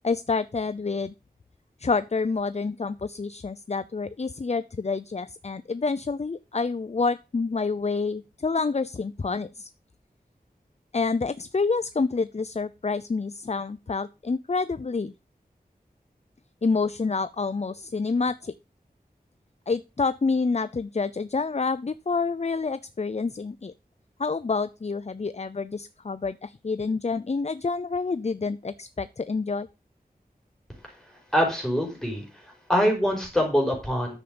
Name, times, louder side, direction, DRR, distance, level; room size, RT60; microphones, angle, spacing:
voice 1, 0.0-1.1 1.8-9.7 10.9-15.1 16.6-18.5 19.7-23.7 24.2-29.7, left 4 dB, 40° left, 14 dB, 0.5 m, -28 dB
voice 2, 31.3-32.2 32.7-34.2, equal, 5° left, 0 dB, 4.9 m, -24 dB
10.5 x 7.2 x 5.2 m, 0.29 s
wide cardioid pair, 60°, 16 cm